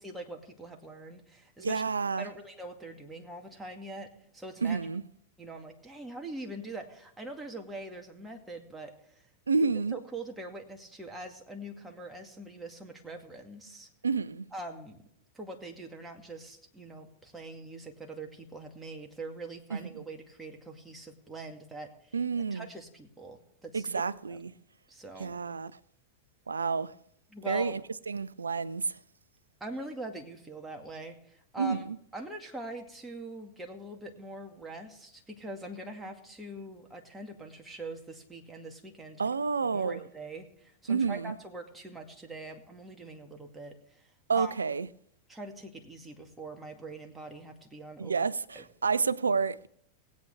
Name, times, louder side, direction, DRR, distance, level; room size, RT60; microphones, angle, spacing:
voice 1, 0.0-1.8 2.2-4.8 5.4-9.2 9.9-13.9 14.5-15.0 15.3-22.1 22.5-23.9 24.3-24.4 24.9-25.4 27.3-27.8 29.6-31.9 32.1-39.2 39.7-44.1 44.3-44.5 45.3-48.1 48.6-48.7, right 2 dB, 10° right, 2.2 m, -43 dB
voice 2, 1.6-2.3 4.6-5.0 9.5-10.0 14.0-14.5 19.7-20.0 22.1-22.7 23.7-24.5 25.2-25.8 26.5-27.0 27.5-27.8 28.1-29.0 31.6-32.0 39.2-40.0 40.9-41.4 44.3-44.9 48.0-49.7, right 5 dB, 75° right, 0.5 m, -29 dB
20.0 x 8.6 x 3.4 m
figure-of-eight pair, 90°, 0 cm